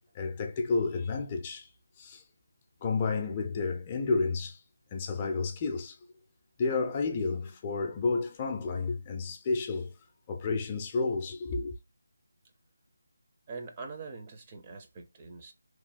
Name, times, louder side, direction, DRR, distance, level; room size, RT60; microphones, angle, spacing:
voice 1, 0.1-1.7 2.0-2.2 2.8-4.6 4.9-6.0 6.6-9.9 10.3-11.8, left 4 dB, 25° left, 0.5 m, -31 dB
voice 2, 13.5-15.5, right 4 dB, 25° right, 0.5 m, -43 dB
3.0 x 2.2 x 4.1 m
figure-of-eight pair, 160°, 0 cm